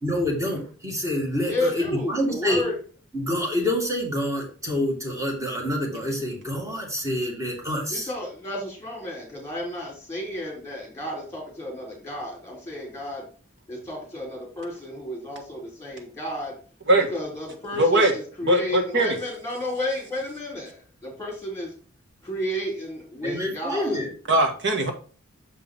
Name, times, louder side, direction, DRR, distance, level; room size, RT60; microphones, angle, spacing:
voice 1, 0.0-2.7 3.1-8.1 23.2-24.1, left 1 dB, 15° right, -1 dB, 2.1 m, -27 dB
voice 2, 1.5-2.7 7.9-13.3 13.7-16.6 17.1-21.7 22.2-24.0, left 1 dB, 15° left, -1 dB, 3.4 m, -32 dB
voice 3, 17.8-18.1 18.4-19.2 24.3-24.9, right 1 dB, 60° right, 5 dB, 1.4 m, -20 dB
6.6 x 5.5 x 3.8 m, 0.41 s
head